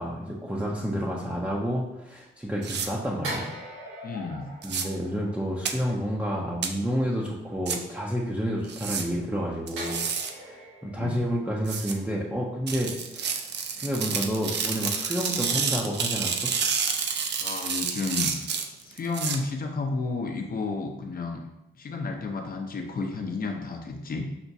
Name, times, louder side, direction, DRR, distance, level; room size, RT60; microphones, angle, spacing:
voice 1, 0.0-3.5 4.6-10.0 10.3-13.5 13.8-16.5, equal, 5° right, -4 dB, 0.6 m, -30 dB
sound 1, 2.6-2.9 4.6-4.8 5.7-5.8 6.6-6.7 7.7-7.8 8.7-9.0 9.7-10.3 11.7-11.9 12.7-19.4, right 6 dB, 60° right, 0.4 m, -29 dB
sound 2, 3.2-5.9 9.8-13.0 13.3-13.5, right 1 dB, 90° right, 1.0 m, -41 dB
voice 2, 4.0-4.5 11.0-11.2 17.4-18.5 18.8-21.4 21.8-24.3, left 3 dB, 45° left, 3 dB, 0.7 m, -32 dB
5.8 x 2.1 x 2.7 m, 0.95 s
cardioid pair, 80°, 20 cm